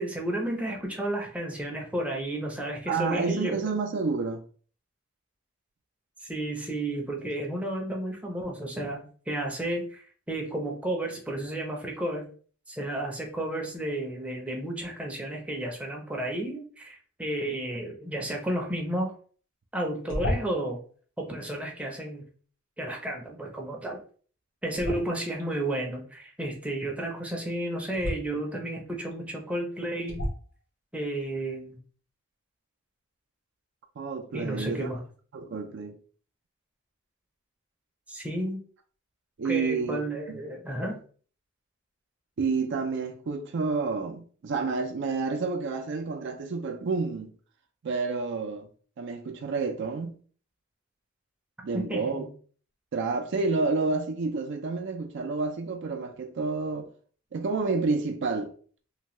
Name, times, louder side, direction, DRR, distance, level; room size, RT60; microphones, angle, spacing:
voice 1, 0.0-3.6 6.3-12.3 12.7-19.1 19.7-20.8 21.2-22.2 22.8-24.0 24.6-30.2 30.9-31.8 34.3-35.0 38.1-38.6 39.4-41.0 51.7-52.3, right 1 dB, 5° right, 0.5 m, -32 dB
voice 2, 2.9-4.4 34.0-34.9 35.3-36.0 39.4-40.0 40.3-40.4 42.4-47.3 47.8-48.7 49.0-50.2 51.6-52.2 52.9-56.9 57.3-58.5, right 4 dB, 60° right, 0.4 m, -29 dB
sound 1, 20.1-20.8 24.7-25.4 27.9-28.2 29.1-29.2 30.1-30.5, left 1 dB, 70° left, 1.1 m, -31 dB
2.7 x 2.2 x 3.1 m
head